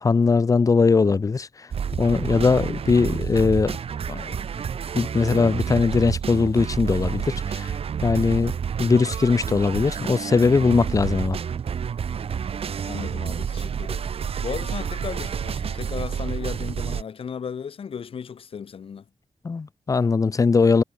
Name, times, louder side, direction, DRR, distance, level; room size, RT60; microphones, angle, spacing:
voice 1, 0.0-1.5 1.9-3.8 4.1-4.4 4.9-7.7 8.0-11.4 19.4-20.8, left 4 dB, 35° left, 1.2 m, -20 dB
sound 1, 1.7-17.0, right 7 dB, 90° right, 4.6 m, -29 dB
voice 2, 12.7-14.1 14.4-19.0, left 7 dB, 70° left, 6.1 m, -35 dB
wide cardioid pair, 165°, 10 cm